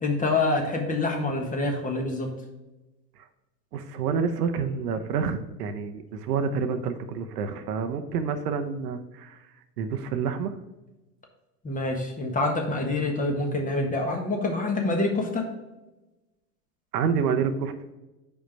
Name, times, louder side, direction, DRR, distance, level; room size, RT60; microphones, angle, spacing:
voice 1, 0.0-2.3 11.6-15.5, left 2 dB, 15° left, 2 dB, 1.3 m, -26 dB
voice 2, 3.7-9.4 9.8-10.5 16.9-17.7, right 6 dB, 65° right, 8 dB, 0.9 m, -28 dB
5.3 x 4.9 x 5.9 m, 1.1 s
hypercardioid pair, 100°, 50 cm